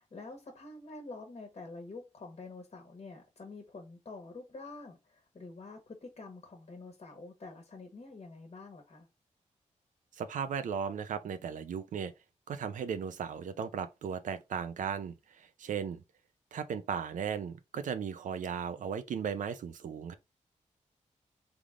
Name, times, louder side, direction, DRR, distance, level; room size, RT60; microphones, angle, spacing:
voice 1, 0.0-9.1, left 3 dB, 50° left, 1.3 m, -47 dB
voice 2, 10.1-12.1 12.5-16.0 16.5-20.1, right 7 dB, 80° right, 0.5 m, -36 dB
3.6 x 3.4 x 3.7 m
cardioid pair, 80°, 13 cm